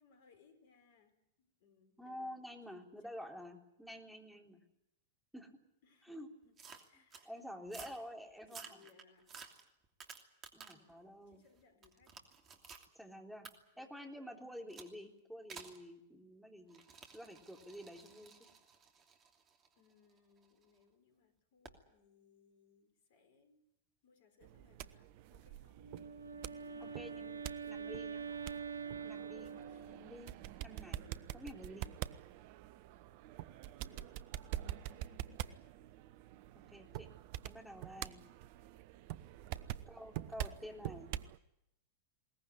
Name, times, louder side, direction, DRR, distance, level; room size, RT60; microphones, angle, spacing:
voice 1, 0.0-2.3 2.7-3.1 5.8-6.6 6.8-7.3 7.7-8.0 8.5-9.5 10.7-12.2 13.7-14.0 19.8-23.7 24.0-25.8 29.6-30.1 30.7-31.3 33.9-35.6 39.5-39.9 40.4-40.8, left 6 dB, 55° left, 8 dB, 4.4 m, -69 dB
voice 2, 2.0-4.6 5.3-5.6 6.1-6.3 7.3-8.8 10.5-11.4 12.9-13.5 13.8-16.8 17.1-18.4 26.8-28.3 29.0-29.5 29.9-30.4 30.6-31.1 31.3-31.9 36.7-37.1 37.4-38.2 39.9-41.2, equal, ahead, 2 dB, 3.7 m, -49 dB
sound 1, 6.6-7.3 7.7-8.0 8.4-10.9 11.3-12.9 13.4-13.5 14.7-14.9 15.5-15.8 16.7-20.6 21.6-21.8, right 6 dB, 25° right, 2.9 m, -54 dB
sound 2, 24.4-41.4, right 13 dB, 45° right, 0.8 m, -46 dB
Wind instrument woodwind instrument, 25.8-30.3, right 6 dB, 75° right, 1.1 m, -45 dB
21.5 x 19.5 x 9.9 m, 0.84 s
figure-of-eight pair, 90°, 0 cm